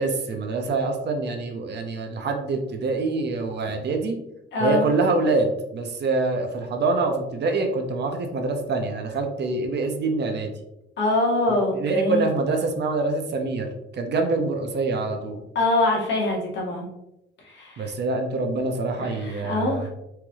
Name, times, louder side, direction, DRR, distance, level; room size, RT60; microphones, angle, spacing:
voice 1, 0.0-4.2 4.6-10.5 11.7-15.4 17.8-19.9, right 3 dB, 60° right, 4 dB, 0.9 m, -25 dB
voice 2, 4.5-4.9 11.0-12.3 15.5-16.9 17.4-17.9 19.0-19.9, left 2 dB, 65° left, -3 dB, 1.7 m, -24 dB
4.7 x 3.2 x 3.6 m, 0.88 s
cardioid pair, 90°, 20 cm